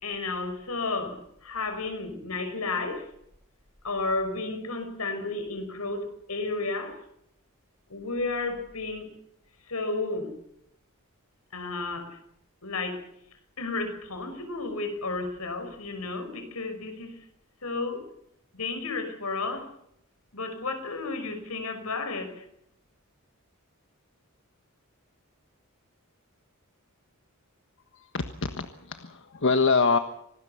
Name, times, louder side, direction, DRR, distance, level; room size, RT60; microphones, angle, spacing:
voice 1, 0.0-3.1 3.8-7.0 7.9-9.1 9.7-10.3 11.5-12.2 12.6-13.1 13.6-17.2 17.6-18.0 18.5-19.7 20.3-22.4, left 3 dB, 80° left, 7 dB, 5.8 m, -32 dB
voice 2, 27.9-30.0, left 4 dB, 60° left, 8 dB, 1.5 m, -25 dB
26.5 x 19.5 x 5.9 m, 0.75 s
head